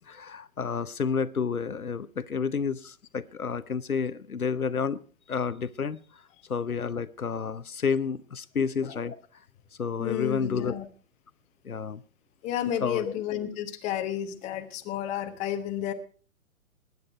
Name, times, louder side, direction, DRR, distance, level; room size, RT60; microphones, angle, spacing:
voice 1, 0.1-5.0 5.3-6.2 6.5-9.2 9.8-10.8 11.6-12.0 12.8-13.1, left 6 dB, 80° left, 15 dB, 0.8 m, -30 dB
voice 2, 10.0-10.9 12.4-15.9, left 10 dB, 15° left, 6 dB, 1.1 m, -31 dB
19.5 x 9.8 x 4.5 m, 0.41 s
figure-of-eight pair, 120°, 42 cm